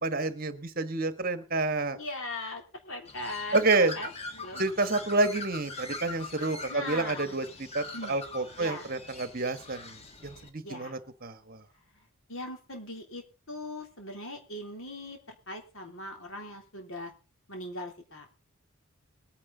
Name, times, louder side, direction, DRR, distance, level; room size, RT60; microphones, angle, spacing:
voice 1, 0.0-2.0 3.5-3.9 4.6-11.6, right 2 dB, 40° right, 10 dB, 1.4 m, -29 dB
voice 2, 1.9-4.6 6.7-7.3 7.9-8.2 8.6-8.9 10.6-11.0 12.3-15.2 15.5-17.1 17.5-18.3, left 1 dB, 65° left, 3 dB, 3.3 m, -40 dB
Bird, 3.0-10.5, left 3 dB, 30° left, 1.6 m, -42 dB
20.5 x 9.8 x 4.0 m, 0.33 s
head